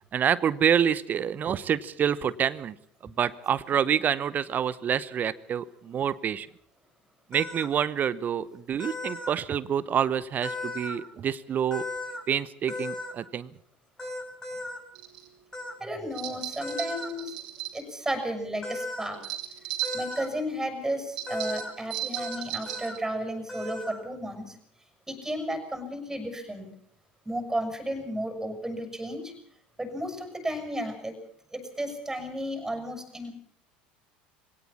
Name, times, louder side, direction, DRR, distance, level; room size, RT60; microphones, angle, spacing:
voice 1, 0.1-2.7 3.0-6.5 7.3-11.8 12.3-13.5, right 8 dB, 35° right, 18 dB, 0.8 m, -27 dB
sound 1, 7.3-7.7 8.8-9.3 10.4-11.0 11.7-12.2 12.7-13.1 14.0-14.8 15.5-15.7 16.6-17.1 18.6-19.1 19.8-20.3 21.3-21.7 22.2-22.4 22.7-23.0 23.5-24.0, left 2 dB, 15° left, 6.3 m, -36 dB
sound 2, 14.9-15.3 16.1-17.8 19.1-20.3 21.2-23.0, right 14 dB, 70° right, 3.7 m, -35 dB
voice 2, 15.8-17.4 17.7-19.3 19.9-24.6 25.1-26.7 27.2-29.3 29.8-31.2 31.5-33.3, equal, 10° right, 7 dB, 6.7 m, -33 dB
21.5 x 18.0 x 7.3 m, 0.65 s
hypercardioid pair, 75°, 5 cm